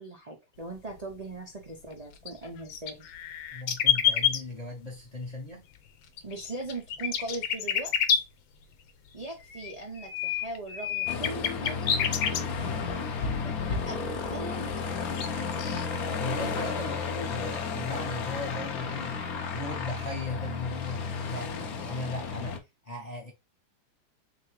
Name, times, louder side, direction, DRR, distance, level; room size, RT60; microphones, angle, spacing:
voice 1, 0.0-3.1 6.2-8.2 9.1-11.9 13.4-14.9 21.3-21.8, right 2 dB, 75° right, 0.3 m, -40 dB
sound 1, 1.9-2.0 2.3-4.4 6.2-8.2 9.4-12.4 13.1-13.2 14.5-14.6 14.9-15.3 15.5-15.9, left 9 dB, 85° left, 1.4 m, -28 dB
voice 2, 3.5-5.6 16.2-19.2 19.5-22.6 22.8-23.3, left 2 dB, 35° left, 0.6 m, -38 dB
Aircraft, 11.1-22.6, left 5 dB, 65° left, 1.0 m, -33 dB
3.6 x 3.4 x 3.2 m
omnidirectional pair, 2.1 m